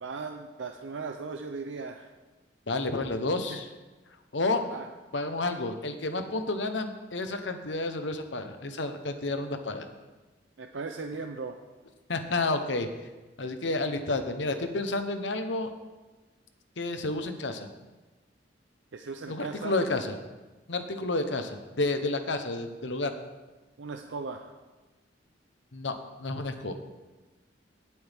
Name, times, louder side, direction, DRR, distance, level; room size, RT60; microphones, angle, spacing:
voice 1, 0.0-2.1 3.5-3.6 4.7-4.9 10.6-11.6 18.9-19.8 23.8-24.5, right 4 dB, 80° right, 4 dB, 0.6 m, -37 dB
voice 2, 2.7-3.7 4.3-4.6 5.1-9.9 12.1-12.9 13.4-15.7 16.8-17.7 19.3-20.2 20.7-23.1 25.7-25.9 26.2-26.7, left 2 dB, 70° left, 8 dB, 1.0 m, -30 dB
17.5 x 7.8 x 3.6 m, 1.2 s
head